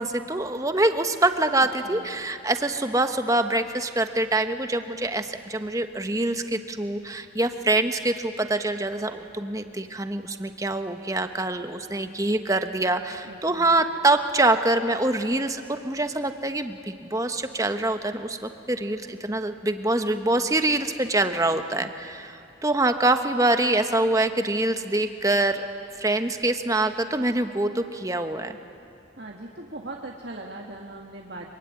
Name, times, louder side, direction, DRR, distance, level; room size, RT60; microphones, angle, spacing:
voice 1, 0.0-25.7 26.0-28.6, right 2 dB, 15° right, 7 dB, 1.1 m, -25 dB
voice 2, 13.2-13.8 21.5-21.9 29.2-31.6, right 2 dB, 55° right, 0 dB, 1.8 m, -40 dB
25.5 x 24.0 x 9.8 m, 2.8 s
head